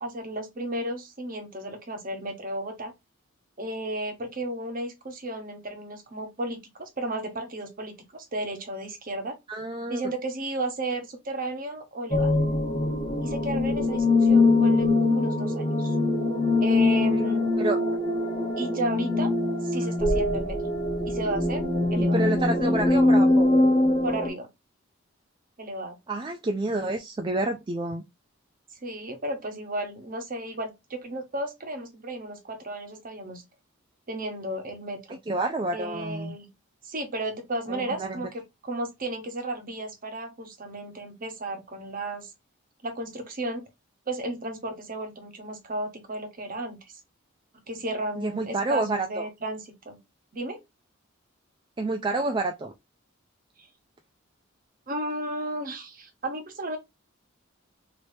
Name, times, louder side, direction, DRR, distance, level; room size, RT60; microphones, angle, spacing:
voice 1, 0.0-2.9 3.6-9.4 9.9-12.3 13.2-15.9 16.6-17.5 18.6-19.3 19.6-20.6 21.1-21.6 21.9-22.2 24.0-24.5 25.6-26.0 28.8-33.4 34.1-35.2 35.7-36.5 36.8-42.3 42.8-43.7 44.1-46.8 47.7-50.0 50.3-50.6 53.6-53.7 54.9-56.8, right 1 dB, 45° right, 1.1 m, -34 dB
voice 2, 9.5-10.0 17.6-17.8 21.9-23.5 26.1-28.0 35.3-36.3 37.7-38.3 48.2-49.2 51.8-52.7, right 2 dB, 25° right, 0.4 m, -29 dB
sound 1, 12.1-24.3, left 2 dB, 25° left, 1.2 m, -23 dB
3.3 x 2.9 x 2.6 m
head